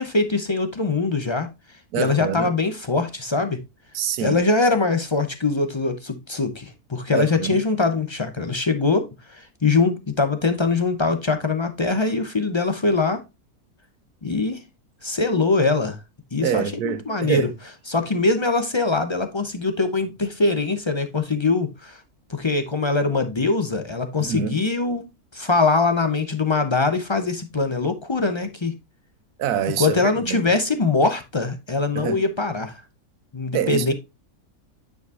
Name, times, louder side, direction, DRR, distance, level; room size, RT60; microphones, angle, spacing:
voice 1, 0.0-1.5 2.0-3.6 4.2-13.2 14.2-14.6 15.0-16.0 16.3-17.5 17.9-22.0 22.3-28.7 29.8-32.8 33.3-33.9, left 3 dB, 40° left, 0.4 m, -22 dB
voice 2, 1.9-2.5 3.9-4.4 7.1-7.6 16.4-17.5 24.2-24.6 29.4-30.4 31.9-32.2 33.5-33.9, right 9 dB, 80° right, 1.3 m, -26 dB
9.4 x 5.1 x 2.5 m
omnidirectional pair, 1.6 m